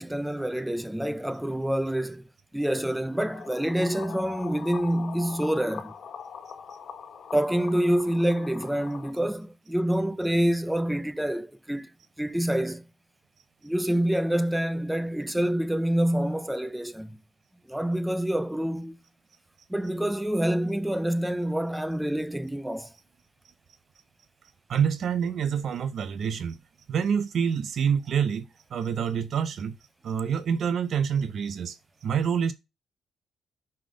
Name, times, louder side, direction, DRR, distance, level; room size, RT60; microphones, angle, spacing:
voice 1, 0.0-2.2 2.5-5.9 7.3-11.9 12.2-12.8 13.6-17.2 17.7-19.0 19.7-22.9, right 1 dB, 5° right, 0.5 m, -27 dB
sound 1, 3.1-9.1, left 7 dB, 55° left, 1.3 m, -42 dB
voice 2, 24.7-26.6 26.9-29.8 30.0-32.5, right 7 dB, 60° right, 0.6 m, -27 dB
5.9 x 5.0 x 4.9 m
cardioid pair, 90°, 0 cm